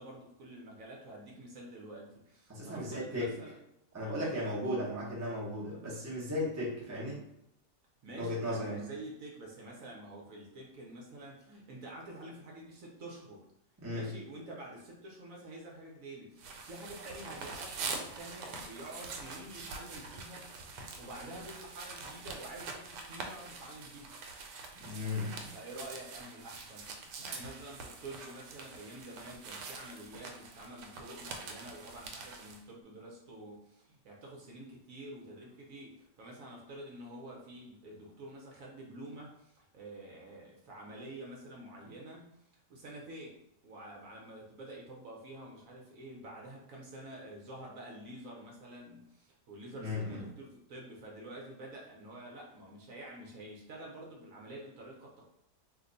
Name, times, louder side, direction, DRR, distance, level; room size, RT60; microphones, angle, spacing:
voice 1, 0.0-3.6 8.0-13.5 13.9-20.5 21.0-24.1 25.5-43.4 43.6-55.3, right 1 dB, 60° right, -2 dB, 1.0 m, -48 dB
voice 2, 2.5-3.3 3.9-7.2 8.1-8.8 13.8-14.1 24.8-25.5 49.8-50.2, left 1 dB, 20° right, -5 dB, 0.4 m, -36 dB
sound 1, 16.4-32.6, right 4 dB, 85° right, 1.2 m, -45 dB
2.9 x 2.1 x 3.8 m, 0.78 s
omnidirectional pair, 1.8 m